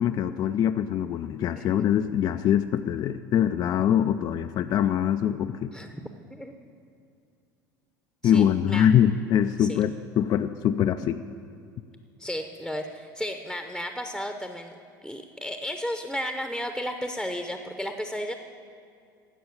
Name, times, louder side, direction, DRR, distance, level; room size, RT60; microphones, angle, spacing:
voice 1, 0.0-5.7 8.2-11.2, left 9 dB, 35° left, 9 dB, 0.4 m, -23 dB
voice 2, 5.7-6.7 8.2-8.9 9.6-9.8 12.2-14.7 15.0-18.3, equal, ahead, 6 dB, 0.8 m, -34 dB
12.0 x 7.8 x 8.1 m, 2.4 s
figure-of-eight pair, 75°, 11 cm